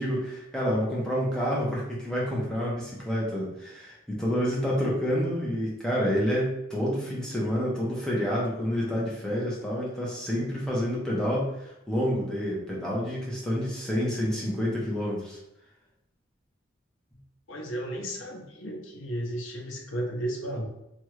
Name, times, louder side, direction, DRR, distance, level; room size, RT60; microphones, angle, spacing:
voice 1, 0.0-15.4, equal, 5° left, -5 dB, 0.7 m, -28 dB
voice 2, 17.5-20.7, right 1 dB, 85° left, 1 dB, 0.7 m, -33 dB
2.9 x 2.4 x 3.1 m, 0.86 s
head